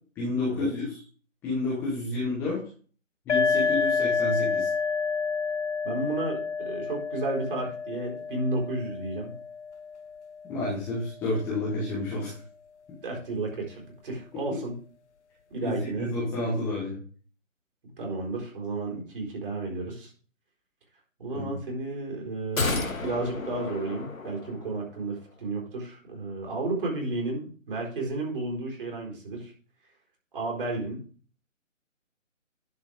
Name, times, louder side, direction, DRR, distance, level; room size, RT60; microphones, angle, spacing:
voice 1, 0.1-1.0 1.4-2.6 3.3-4.7 10.5-12.3 15.6-17.0 21.3-21.5, left 2 dB, 5° left, -8 dB, 1.1 m, -30 dB
sound 1, 3.3-10.8, left 5 dB, 60° left, 1.0 m, -29 dB
voice 2, 5.8-9.4 13.0-14.7 15.5-16.2 18.0-20.1 21.2-29.5 30.3-31.0, right 2 dB, 40° right, -1 dB, 4.3 m, -32 dB
sound 2, 22.6-24.9 25.2-25.3, left 3 dB, 85° left, 2.1 m, -32 dB
11.0 x 5.0 x 4.9 m, 0.43 s
figure-of-eight pair, 160°, 40 cm